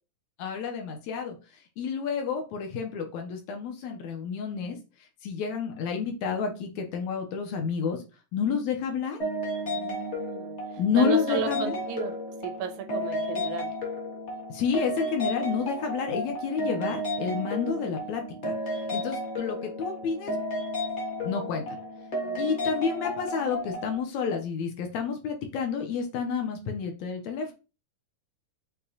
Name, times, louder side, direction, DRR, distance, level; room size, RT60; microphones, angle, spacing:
voice 1, 0.4-1.4 1.8-4.8 5.2-8.0 8.3-9.2 10.8-11.8 14.5-18.5 18.9-20.4 21.2-21.8 22.4-27.5, left 6 dB, 75° left, 1.8 m, -30 dB
sound 1, 9.2-24.0, equal, 60° left, 0.7 m, -33 dB
voice 2, 9.6-12.1 12.4-13.7 22.2-22.6, right 7 dB, 80° right, 1.9 m, -35 dB
6.7 x 2.8 x 2.7 m
omnidirectional pair, 3.6 m